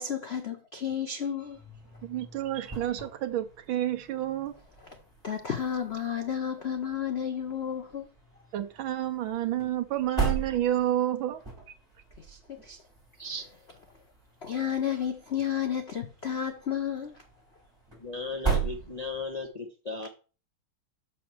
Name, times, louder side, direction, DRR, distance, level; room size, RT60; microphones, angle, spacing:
voice 1, 0.0-1.6 4.8-5.0 5.2-8.1 12.2-12.8 14.4-17.1, left 8 dB, 85° left, 0.5 m, -32 dB
sound 1, 1.4-19.5, right 5 dB, 10° right, 4.1 m, -39 dB
voice 2, 2.0-4.5 8.5-11.4, right 12 dB, 70° right, 1.5 m, -29 dB
voice 3, 18.0-20.1, left 3 dB, 35° left, 0.6 m, -36 dB
6.3 x 6.3 x 6.0 m
omnidirectional pair, 2.3 m